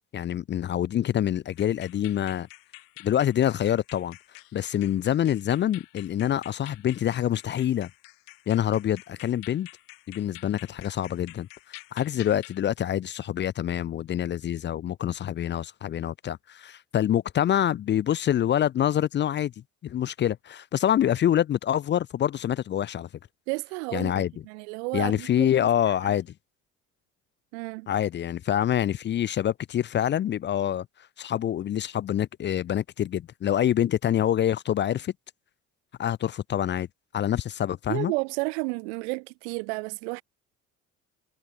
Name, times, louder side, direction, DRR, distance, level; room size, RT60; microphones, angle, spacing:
voice 1, 0.1-2.5 3.0-4.2 4.5-7.9 8.5-9.7 10.1-11.5 11.9-19.5 19.8-23.1 23.9-24.3 24.9-26.3 27.9-30.9 31.2-35.1 36.0-36.9 37.1-38.1, left 10 dB, 35° left, 0.4 m, -26 dB
sound 1, 1.5-12.6, left 23 dB, 80° left, 6.4 m, -49 dB
voice 2, 23.5-25.5 26.0-26.1 27.5-27.9 37.9-40.2, right 31 dB, 90° right, 1.9 m, -32 dB
supercardioid pair, 75°, 33 cm